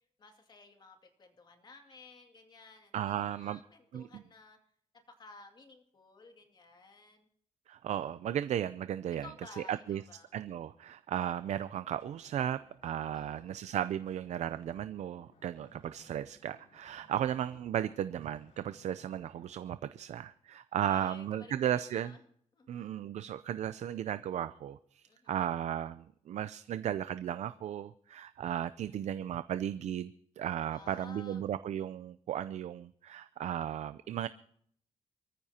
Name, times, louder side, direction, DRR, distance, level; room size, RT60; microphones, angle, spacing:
voice 1, 0.2-4.6 5.1-7.3 9.2-10.3 13.1-13.6 20.9-22.2 22.5-23.0 25.1-25.4 28.9-29.2 30.6-31.5, left 3 dB, 35° left, 4 dB, 2.3 m, -54 dB
voice 2, 2.9-3.6 3.9-4.2 7.7-9.3 9.7-10.0 10.3-22.1 22.7-34.3, right 10 dB, 70° right, 13 dB, 0.5 m, -35 dB
sound 1, 11.9-19.5, left 3 dB, 80° left, 3.7 m, -63 dB
25.5 x 14.0 x 2.9 m, 0.64 s
wide cardioid pair, 145°, 12 cm